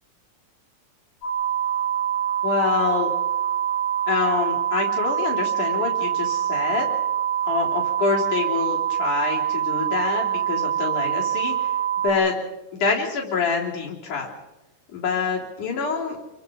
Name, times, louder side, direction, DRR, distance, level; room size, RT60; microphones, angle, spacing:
sound 1, 1.2-12.1, right 10 dB, 45° left, 3.8 m, -25 dB
voice 1, 2.4-3.1 4.1-6.9 7.5-11.7 12.0-12.4 12.7-14.3 14.9-16.2, left 5 dB, 75° left, -2 dB, 5.0 m, -26 dB
28.0 x 22.5 x 5.2 m, 1.1 s
omnidirectional pair, 3.6 m